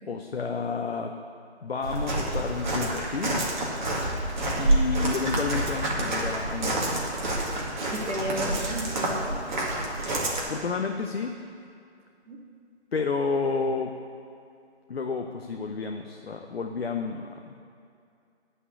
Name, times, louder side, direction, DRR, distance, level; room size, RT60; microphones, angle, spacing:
voice 1, 0.1-1.1 1.6-3.4 4.6-7.1 10.5-11.3 12.9-13.9 14.9-17.5, left 4 dB, 60° left, 3 dB, 0.8 m, -30 dB
Walk footsteps, 1.8-10.4, right 1 dB, 40° right, 2.1 m, -28 dB
voice 2, 7.9-9.3 12.3-12.4, right 1 dB, 80° right, -3 dB, 2.4 m, -33 dB
11.0 x 5.5 x 8.3 m, 2.4 s
hypercardioid pair, 170°, 34 cm